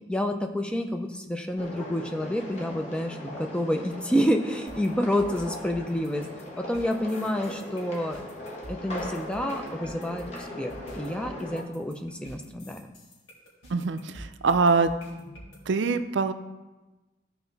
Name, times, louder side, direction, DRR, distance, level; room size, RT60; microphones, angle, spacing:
voice 1, 0.1-6.2 6.6-8.2 8.7-12.9, equal, 5° left, 4 dB, 0.5 m, -29 dB
sound 1, 1.6-11.6, left 1 dB, 35° left, 1.4 m, -39 dB
sound 2, 4.7-15.6, equal, 85° left, 3.1 m, -47 dB
voice 2, 13.7-14.9 15.7-16.3, right 4 dB, 70° right, 10 dB, 0.5 m, -24 dB
13.5 x 4.6 x 4.0 m, 1.1 s
head